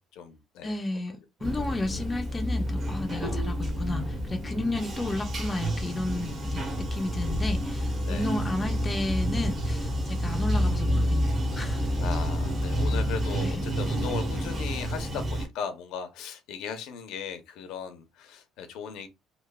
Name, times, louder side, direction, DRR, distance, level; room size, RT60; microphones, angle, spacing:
voice 1, 0.0-0.7 3.1-3.2 8.0-8.3 12.0-19.1, left 7 dB, 70° left, 0.5 m, -37 dB
voice 2, 0.6-11.9 13.4-13.6, left 2 dB, 15° left, 0.4 m, -33 dB
Bathtub (filling or washing), 1.4-15.5, equal, 35° right, 0.8 m, -29 dB
3.0 x 2.0 x 2.2 m
cardioid pair, 150°, 0 cm